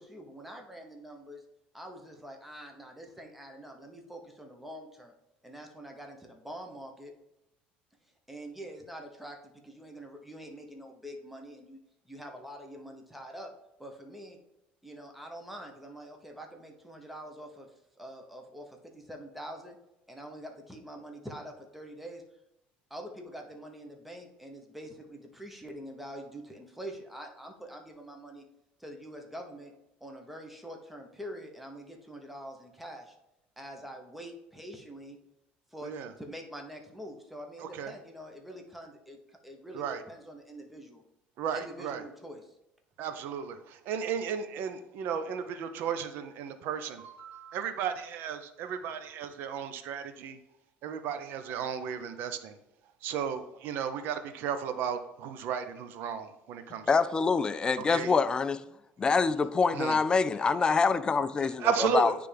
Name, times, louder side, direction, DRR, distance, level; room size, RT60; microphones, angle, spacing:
voice 1, 0.0-1.4 1.7-5.1 5.4-7.1 8.3-11.8 12.0-13.5 13.8-14.4 14.8-17.7 18.0-19.8 20.1-22.2 22.9-28.5 28.8-29.7 30.0-33.2 33.6-35.2 35.7-35.9 36.2-41.0 41.5-42.5, equal, 5° right, 0.9 m, -45 dB
voice 2, 37.6-37.9 39.7-40.0 41.4-42.0 43.0-50.4 50.8-52.6 53.0-57.1 57.8-58.1 59.7-60.0 61.6-62.2, right 7 dB, 65° right, 0.6 m, -34 dB
voice 3, 56.9-58.6 59.0-62.1, left 4 dB, 20° left, 0.3 m, -25 dB
9.4 x 3.4 x 3.4 m
cardioid pair, 125°, 4 cm